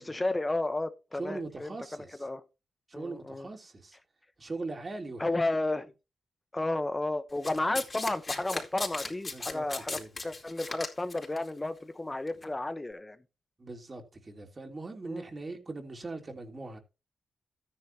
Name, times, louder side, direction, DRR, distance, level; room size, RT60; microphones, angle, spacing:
voice 1, 0.0-2.4 2.9-3.5 5.2-5.9 6.5-13.2 15.1-15.2, left 2 dB, 20° left, 1.1 m, -32 dB
voice 2, 1.1-2.2 2.9-4.0 4.4-5.4 9.3-9.6 9.9-10.1 13.6-16.8, right 3 dB, 40° right, 3.4 m, -40 dB
Domestic sounds home sounds, 7.4-11.4 12.3-12.4, left 3 dB, 40° left, 4.1 m, -37 dB
13.5 x 10.0 x 2.9 m
cardioid pair, 55°, 0 cm